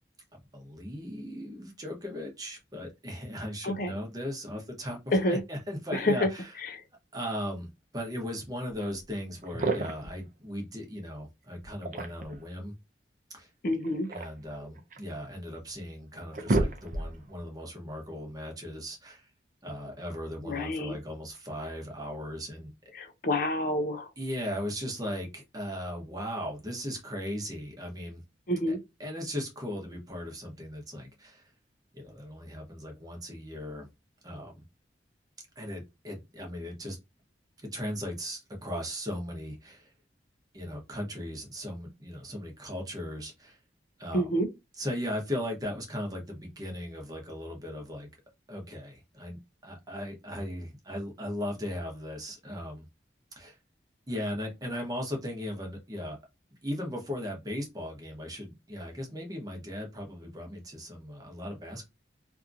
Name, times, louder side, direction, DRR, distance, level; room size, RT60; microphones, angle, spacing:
voice 1, 0.3-6.5 7.1-12.7 13.3-13.5 14.1-19.3 19.6-22.9 24.2-28.2 28.7-28.8 29.0-31.5 31.9-33.9 34.2-34.6 35.6-37.0 37.6-39.9 40.5-43.6 44.0-44.3 44.7-48.1 48.5-52.9 53.4-53.6 54.1-56.2 56.6-61.9, equal, 20° right, 0.9 m, -37 dB
sound 1, 9.4-10.2 11.6-12.5 13.7-15.1 15.7-15.8 16.1-17.3, right 2 dB, 45° right, 0.6 m, -31 dB
voice 2, 13.6-14.1 20.4-21.0 23.0-24.1 28.5-28.8 44.1-44.5, left 1 dB, 50° left, 0.6 m, -28 dB
2.8 x 2.5 x 2.4 m
head